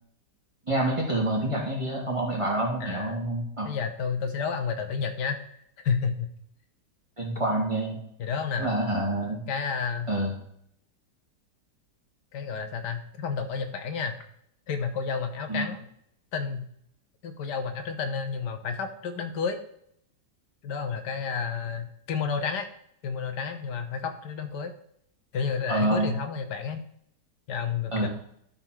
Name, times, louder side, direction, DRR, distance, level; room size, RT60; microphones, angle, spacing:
voice 1, 0.7-3.7 7.2-8.0 8.6-9.4 10.1-10.3 15.5-15.7 25.7-26.1 27.9-28.1, right 1 dB, 20° right, -3 dB, 2.3 m, -27 dB
voice 2, 2.8-3.2 3.6-5.4 5.8-6.3 8.2-8.7 9.5-10.1 12.3-14.2 14.7-15.9 16.3-16.7 17.2-19.6 20.6-22.7 23.0-24.7 25.3-26.8 27.5-28.1, left 6 dB, 85° left, 7 dB, 1.6 m, -30 dB
12.5 x 4.4 x 4.5 m, 0.70 s
omnidirectional pair, 1.8 m